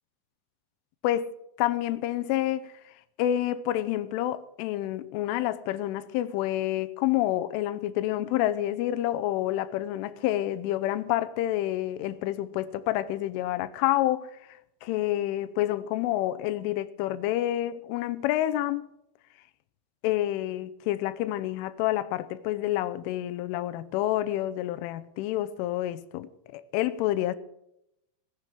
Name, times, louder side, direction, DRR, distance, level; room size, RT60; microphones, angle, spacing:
voice 1, 1.0-2.7 3.2-14.3 14.8-18.9 20.0-27.4, left 14 dB, 80° left, 3.1 m, -28 dB
18.0 x 10.0 x 6.1 m
omnidirectional pair, 5.9 m